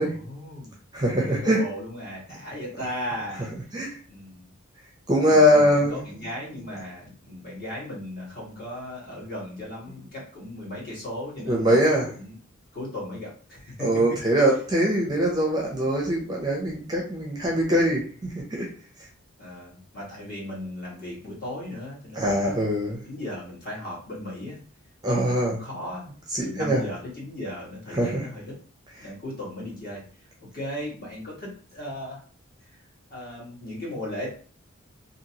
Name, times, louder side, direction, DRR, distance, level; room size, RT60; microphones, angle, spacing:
voice 1, 0.0-0.7 1.3-3.5 4.1-4.4 5.2-12.3 12.7-13.9 19.4-22.6 23.0-24.6 25.1-26.0 26.4-28.5 29.0-30.0 30.5-32.2 33.1-34.3, left 1 dB, 45° left, -6 dB, 1.4 m, -36 dB
voice 2, 0.9-1.6 2.7-2.8 3.7-3.9 5.1-6.0 11.5-12.1 13.8-18.7 22.1-23.0 25.0-25.6 26.3-26.8 27.9-28.3 29.0-29.1, equal, 20° right, -1 dB, 0.5 m, -22 dB
2.8 x 2.6 x 2.8 m, 0.43 s
head